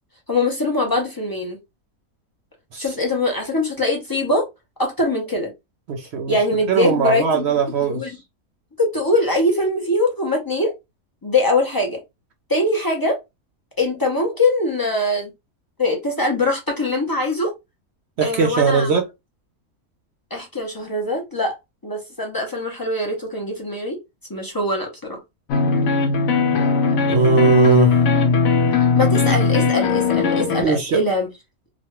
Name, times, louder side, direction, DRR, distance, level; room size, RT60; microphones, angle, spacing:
voice 1, 0.3-1.6 2.8-4.5 4.8-5.5 6.3-7.5 7.9-8.1 8.8-10.7 11.2-12.0 12.5-13.2 13.8-15.3 15.8-17.5 18.2-18.9 20.3-21.6 21.8-24.0 24.3-25.2 28.9-31.3, left 2 dB, 35° left, 0.3 m, -22 dB
voice 2, 5.9-6.4 6.7-8.1 18.2-19.0 27.1-27.9 30.6-31.0, right 4 dB, 65° right, 0.6 m, -19 dB
sound 1, 25.5-30.6, left 5 dB, 75° left, 1.1 m, -18 dB
3.0 x 2.3 x 2.9 m
omnidirectional pair, 1.6 m